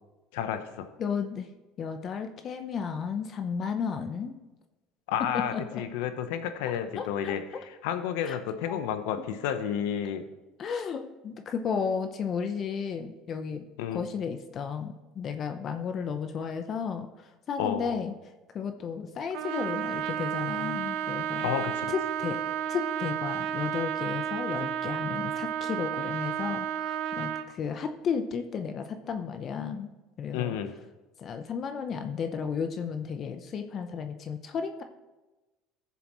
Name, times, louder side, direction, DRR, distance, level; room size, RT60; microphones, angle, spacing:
voice 1, 0.3-0.9 5.1-10.3 13.8-14.0 17.6-18.0 21.4-21.9 30.3-30.7, left 9 dB, 85° left, 9 dB, 0.9 m, -31 dB
voice 2, 1.0-1.5 1.8-4.4 5.2-5.8 7.0-7.6 8.2-8.4 8.7-9.1 10.6-13.6 13.9-17.1 17.5-18.1 18.5-21.5 21.9-22.4 22.7-29.9 30.2-30.6 31.2-34.8, left 6 dB, 40° left, 7 dB, 0.8 m, -33 dB
Trumpet, 19.3-27.5, right 9 dB, 70° right, 0.6 m, -32 dB
15.5 x 7.0 x 3.1 m, 1.1 s
supercardioid pair, 115°, 0 cm